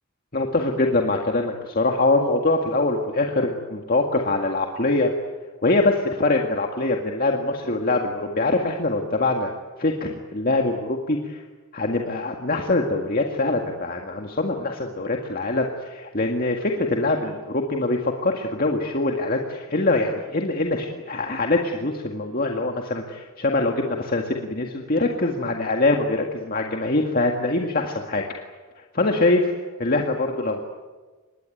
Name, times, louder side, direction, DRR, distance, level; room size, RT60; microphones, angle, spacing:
voice 1, 0.3-5.1 5.6-9.5 9.8-11.4 11.7-28.2 28.9-29.5 29.8-30.7, left 2 dB, 45° left, 2 dB, 2.0 m, -23 dB
26.0 x 21.0 x 9.2 m, 1.3 s
head